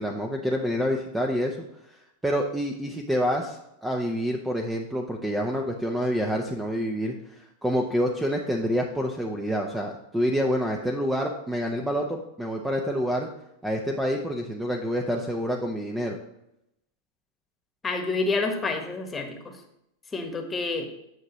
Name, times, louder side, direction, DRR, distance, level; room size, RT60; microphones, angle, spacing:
voice 1, 0.0-1.6 2.2-13.3 13.6-16.2, equal, 5° right, 2 dB, 0.7 m, -27 dB
voice 2, 17.8-19.6 20.1-20.9, left 3 dB, 15° left, 4 dB, 1.3 m, -28 dB
9.5 x 6.2 x 3.1 m, 0.82 s
supercardioid pair, 135°, 0 cm